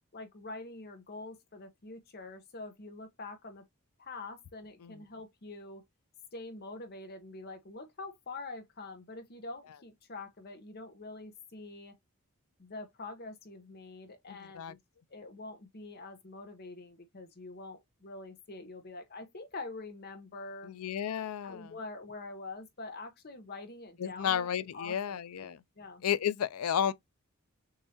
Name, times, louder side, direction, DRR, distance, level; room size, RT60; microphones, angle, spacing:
voice 1, 0.1-3.6 4.0-5.8 6.3-11.9 12.6-14.8 15.1-20.7 21.4-24.5 24.7-26.0, left 3 dB, 45° left, 0.9 m, -45 dB
voice 2, 14.3-14.7 20.6-21.7 24.0-25.6 26.0-26.9, left 9 dB, 85° left, 0.4 m, -32 dB
6.6 x 2.7 x 2.8 m
head